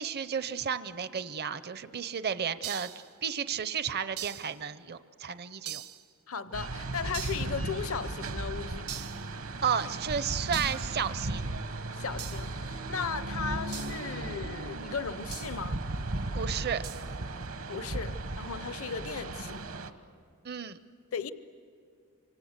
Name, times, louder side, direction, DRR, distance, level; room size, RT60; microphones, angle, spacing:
voice 1, 0.0-2.9 3.2-5.8 9.6-11.5 16.3-16.8 20.4-20.8, right 7 dB, 45° right, 0.7 m, -32 dB
sound 1, 2.6-3.1 4.2-4.6 5.6-6.1 7.1-7.5 8.9-9.3 10.5-10.9 12.2-12.5 13.7-14.0 15.3-15.6 16.8-17.1, right 11 dB, 85° right, 1.1 m, -41 dB
voice 2, 6.3-9.0 11.9-15.8 17.7-19.6 21.1-21.3, left 6 dB, 65° left, 0.7 m, -36 dB
sound 2, 6.5-19.9, right 2 dB, 65° right, 1.2 m, -36 dB
28.0 x 25.5 x 8.1 m
head